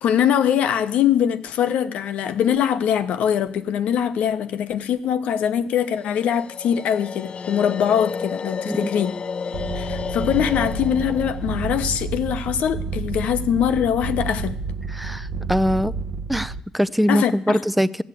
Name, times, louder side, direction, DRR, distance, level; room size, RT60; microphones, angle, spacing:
voice 1, 0.0-9.1 9.7-14.6 17.1-17.6, left 9 dB, 80° left, 1.0 m, -22 dB
sound 1, 5.8-13.0, left 5 dB, 50° left, 0.6 m, -32 dB
sound 2, 9.5-16.6, right 4 dB, 80° right, 0.9 m, -30 dB
voice 2, 14.9-15.9 16.3-18.0, equal, 5° right, 0.5 m, -22 dB
14.5 x 8.1 x 8.4 m
cardioid pair, 75°, 2 cm